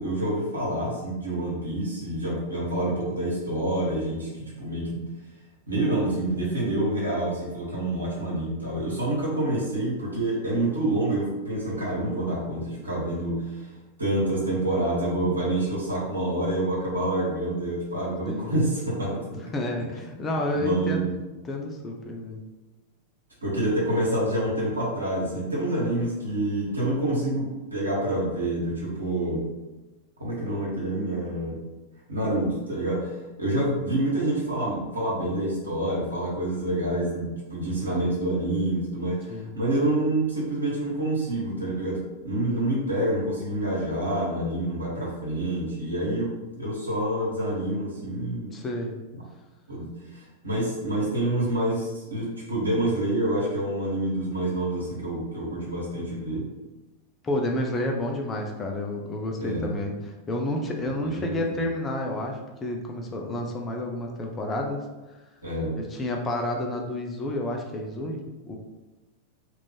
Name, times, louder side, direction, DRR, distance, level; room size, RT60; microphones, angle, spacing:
voice 1, 0.0-5.0 5.7-13.7 14.0-19.4 20.5-21.1 23.4-29.4 30.2-31.6 32.1-48.5 49.7-56.4 59.4-59.7 60.9-61.6 65.4-65.8, right 1 dB, 80° right, -5 dB, 1.2 m, -27 dB
voice 2, 19.4-21.0 21.5-22.4 39.3-39.5 48.5-48.9 57.2-64.8 65.8-68.6, left 1 dB, 20° left, 1 dB, 0.5 m, -30 dB
3.0 x 2.5 x 3.4 m, 1.1 s
figure-of-eight pair, 90°, 0 cm